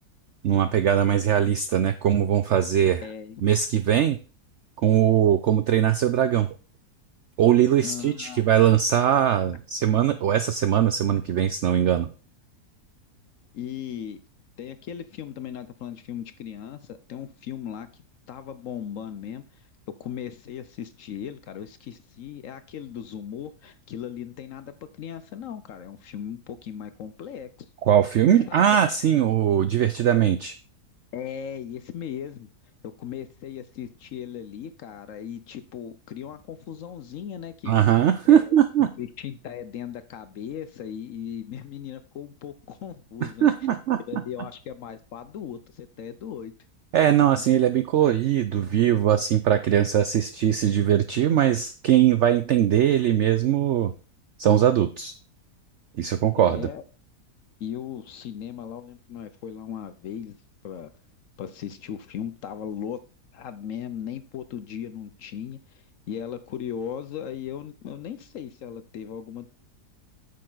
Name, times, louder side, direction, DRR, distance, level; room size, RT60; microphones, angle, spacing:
voice 1, 0.4-3.0 3.4-4.2 4.8-6.5 7.4-12.1 27.9-30.5 37.7-38.9 43.2-44.0 46.9-53.9 54.4-55.1 56.0-56.7, right 10 dB, 75° right, 11 dB, 0.6 m, -21 dB
voice 2, 3.0-3.4 7.8-8.4 13.5-14.2 14.6-17.9 18.3-19.6 20.0-27.5 28.3-28.6 31.1-32.5 32.8-37.8 38.2-38.6 39.0-43.5 44.1-46.5 56.3-56.8 57.6-60.4 60.6-60.9 61.4-63.0 63.3-69.5, left 9 dB, 65° left, 12 dB, 0.9 m, -37 dB
8.6 x 6.7 x 3.9 m, 0.35 s
omnidirectional pair, 1.8 m